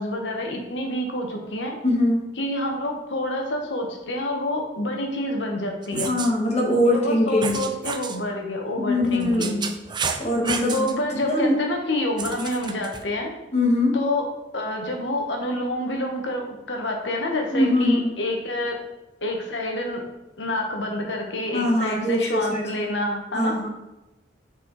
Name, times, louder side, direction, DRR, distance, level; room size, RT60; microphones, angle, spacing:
voice 1, 0.0-1.8 2.4-6.1 6.9-9.6 10.7-13.3 13.9-14.2 14.5-18.8 19.2-20.0 20.4-23.5, left 1 dB, 85° left, 2 dB, 1.2 m, -28 dB
voice 2, 1.8-2.3 6.0-7.6 8.8-9.7 10.2-10.9 11.2-11.6 12.3-12.4 13.5-14.0 17.5-18.1 21.5-23.0 23.3-23.7, left 1 dB, 35° left, -2 dB, 1.6 m, -22 dB
sound 1, 5.8-6.3 7.4-8.2 9.0-10.9 12.2-13.0, right 5 dB, 25° right, 0.4 m, -31 dB
6.4 x 4.4 x 4.0 m, 0.99 s
head